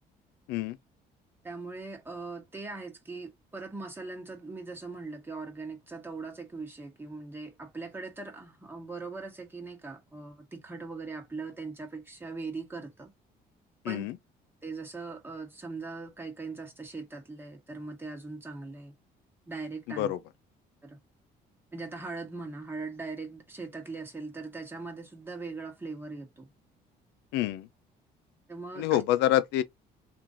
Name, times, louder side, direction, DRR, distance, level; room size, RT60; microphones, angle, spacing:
voice 1, 1.4-13.1 13.8-14.1 14.6-18.9 19.5-20.1 20.8-21.0 21.7-26.5 28.5-29.0, right 3 dB, 15° right, 1.3 m, -40 dB
voice 2, 27.3-27.7 28.8-29.6, left 13 dB, 85° left, 0.5 m, -26 dB
3.0 x 2.5 x 3.7 m
cardioid pair, 110°, 17 cm